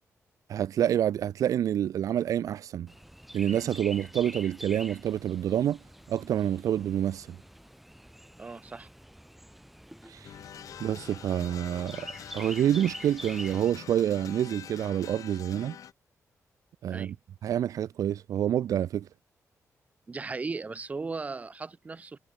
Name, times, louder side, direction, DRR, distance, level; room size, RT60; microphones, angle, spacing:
voice 1, 0.5-2.9 3.3-5.8 6.1-7.4 10.1-10.3 10.8-12.1 12.3-15.8 16.8-17.2 17.4-19.1, right 10 dB, 75° right, 0.5 m, -27 dB
Chirp tweet, 2.9-13.7, equal, ahead, 1.1 m, -46 dB
voice 2, 8.4-8.9 16.9-17.2 20.1-22.2, right 4 dB, 25° right, 3.9 m, -37 dB
sound 1, 10.2-15.9, left 9 dB, 75° left, 2.0 m, -45 dB
wide cardioid pair, 170°, 6 cm